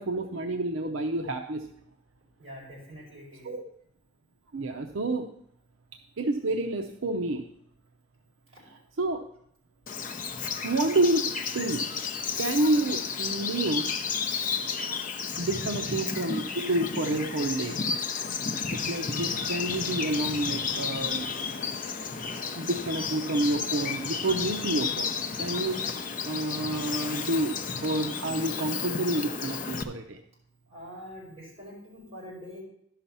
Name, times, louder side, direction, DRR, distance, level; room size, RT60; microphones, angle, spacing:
voice 1, 0.0-1.7 3.4-3.6 4.5-5.3 6.2-7.5 8.7-9.3 10.6-11.9 12.3-13.9 15.4-17.8 18.7-21.3 22.5-25.8 26.2-30.2, right 2 dB, 70° right, 5 dB, 0.6 m, -29 dB
voice 2, 2.4-3.5 15.3-15.6 19.1-19.2 30.7-32.6, equal, 30° right, -6 dB, 5.1 m, -45 dB
Bird vocalization bird call bird song, 9.9-29.8, left 5 dB, 40° left, 0.6 m, -32 dB
11.5 x 5.8 x 5.5 m, 0.71 s
head